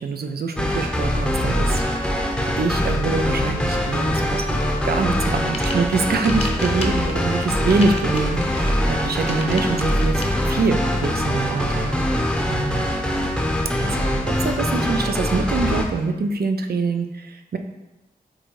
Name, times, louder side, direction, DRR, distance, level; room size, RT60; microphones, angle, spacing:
voice 1, 0.0-2.1 2.4-11.9 12.2-12.9 13.8-17.6, right 4 dB, 70° right, 6 dB, 0.6 m, -25 dB
sound 1, 0.6-15.8, equal, 5° left, 0.8 m, -23 dB
sound 2, 5.3-10.2, left 2 dB, 40° left, 0.9 m, -34 dB
7.6 x 2.7 x 4.6 m, 1.0 s
wide cardioid pair, 90°, 16 cm